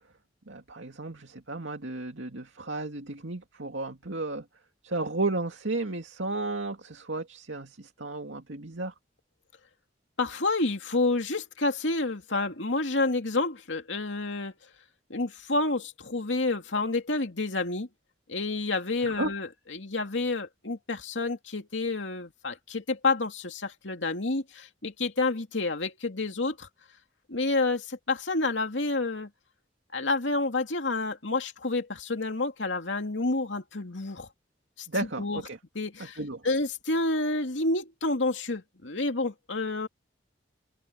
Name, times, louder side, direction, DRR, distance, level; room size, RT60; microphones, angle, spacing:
voice 1, 0.5-4.4 4.8-8.9 19.0-19.3 34.9-35.6 36.0-36.4, right 2 dB, 85° right, 2.3 m, -33 dB
voice 2, 10.2-14.5 15.1-17.9 18.3-26.7 27.3-29.3 29.9-34.3 34.8-34.9 35.2-35.4 35.7-39.9, left 2 dB, 80° left, 2.5 m, -29 dB
head